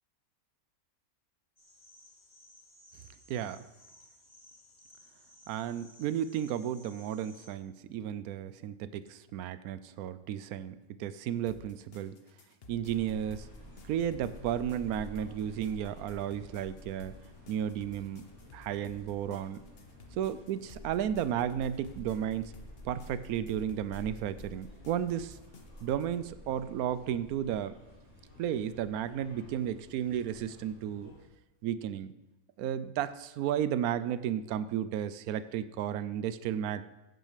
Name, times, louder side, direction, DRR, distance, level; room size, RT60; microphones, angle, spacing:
sound 1, 1.6-7.5, left 1 dB, 30° left, 1.8 m, -58 dB
voice 1, 3.3-3.6 5.5-12.2 12.7-13.5 13.9-17.1 17.5-18.3 18.5-19.6 20.2-22.5 22.8-25.4 25.8-27.8 28.4-31.1 31.6-32.1 32.6-36.9, right 10 dB, 85° right, 14 dB, 1.1 m, -33 dB
sound 2, 11.5-26.2, left 4 dB, 45° left, 1.1 m, -55 dB
sound 3, 12.9-31.3, left 1 dB, 10° right, 3.2 m, -51 dB
15.5 x 6.4 x 5.0 m, 0.97 s
omnidirectional pair, 1.5 m